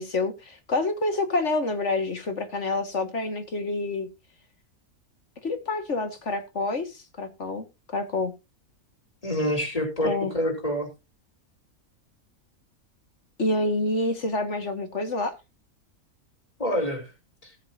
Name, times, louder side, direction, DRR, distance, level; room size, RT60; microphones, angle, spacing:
voice 1, 0.0-4.1 5.4-7.6 7.9-8.3 10.0-10.4 13.4-15.4, left 2 dB, 55° left, 2.2 m, -27 dB
voice 2, 9.2-10.9 16.6-17.0, equal, 25° left, 4.2 m, -26 dB
19.5 x 7.4 x 2.8 m
omnidirectional pair, 1.5 m